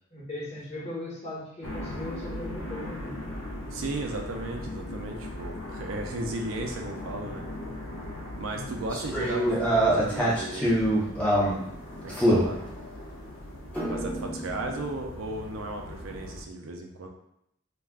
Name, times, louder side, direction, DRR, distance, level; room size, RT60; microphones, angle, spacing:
voice 1, 0.1-3.2 8.5-8.8, left 1 dB, 35° left, -7 dB, 1.0 m, -38 dB
sound 1, 1.6-16.4, left 1 dB, 75° left, 0.5 m, -39 dB
voice 2, 3.7-7.5 8.4-10.9 12.0-12.6 13.8-17.1, right 2 dB, 85° right, 3 dB, 0.4 m, -35 dB
sound 2, 8.9-11.6 12.1-12.5 13.7-14.9, right 1 dB, 5° left, 0.5 m, -25 dB
2.3 x 2.1 x 3.4 m, 0.76 s
head